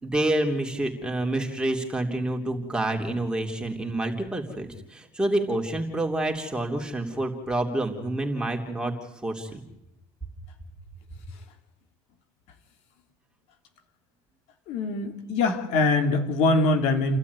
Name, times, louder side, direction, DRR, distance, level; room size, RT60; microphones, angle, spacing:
voice 1, 0.0-8.9 9.2-9.6, right 1 dB, 5° right, 2 dB, 3.6 m, -28 dB
voice 2, 14.7-17.2, left 2 dB, 70° left, 6 dB, 3.4 m, -23 dB
30.0 x 12.5 x 9.8 m, 0.86 s
cardioid pair, 125°, 12 cm